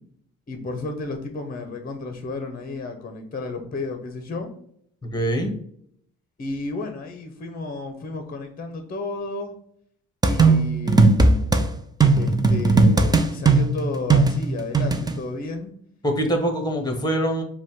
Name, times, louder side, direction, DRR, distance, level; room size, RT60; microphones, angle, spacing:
voice 1, 0.5-4.5 6.4-9.5 10.3-11.5 12.2-15.7, left 3 dB, 30° left, 6 dB, 0.8 m, -32 dB
voice 2, 5.0-5.6 16.0-17.4, right 1 dB, 15° left, 5 dB, 1.2 m, -24 dB
sound 1, 10.2-11.6 12.0-15.1, right 3 dB, 15° right, 0.5 m, -17 dB
5.1 x 2.3 x 3.6 m, 0.68 s
cardioid pair, 90°, 30 cm